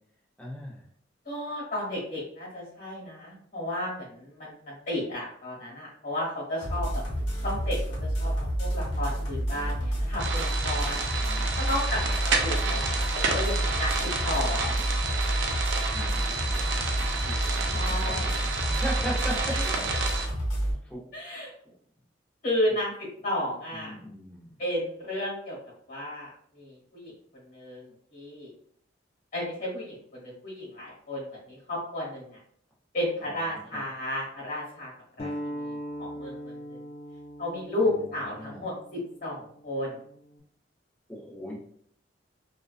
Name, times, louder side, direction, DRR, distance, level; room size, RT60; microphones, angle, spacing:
voice 1, 0.4-0.8 11.2-11.6 11.9-12.0 15.9-18.3 18.7-19.6 20.8-21.0 21.6-21.7 23.7-24.5 33.2-33.8 38.0-38.1 38.4-38.7 41.1-41.6, right 1 dB, 10° left, -6 dB, 0.7 m, -39 dB
voice 2, 1.2-7.0 7.4-11.1 11.6-14.9 17.7-18.3 19.5-19.6 21.1-21.5 22.4-23.9 24.6-25.6 25.9-28.5 29.3-32.4 32.9-34.9 35.2-36.8 37.4-40.0, left 1 dB, 50° left, -4 dB, 1.2 m, -33 dB
sound 1, 6.6-20.7, equal, 70° left, 0.9 m, -29 dB
sound 2, 10.2-20.3, right 4 dB, 65° right, 0.4 m, -30 dB
sound 3, 35.2-40.4, equal, 35° left, 0.3 m, -40 dB
2.4 x 2.2 x 2.4 m, 0.64 s
head